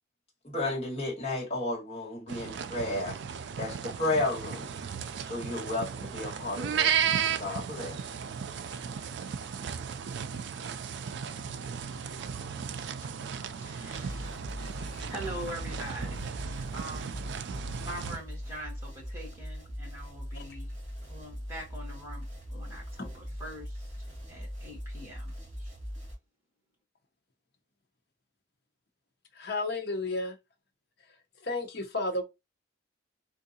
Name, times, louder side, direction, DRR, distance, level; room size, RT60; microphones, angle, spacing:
voice 1, 0.4-3.2 3.6-4.7 5.2-8.1, left 2 dB, 30° left, 1.6 m, -33 dB
sound 1, 2.3-18.2, right 7 dB, 60° right, 0.3 m, -35 dB
voice 2, 13.6-14.5 15.1-17.2 17.8-20.7 21.1-23.9 24.3-25.7, right 1 dB, 15° right, 1.6 m, -43 dB
sound 2, 13.9-26.1, equal, 35° right, 2.0 m, -41 dB
voice 3, 14.6-15.1 20.3-20.4 23.0-23.1 29.3-30.3 31.4-32.2, left 2 dB, 55° left, 0.8 m, -33 dB
3.7 x 2.5 x 2.7 m
head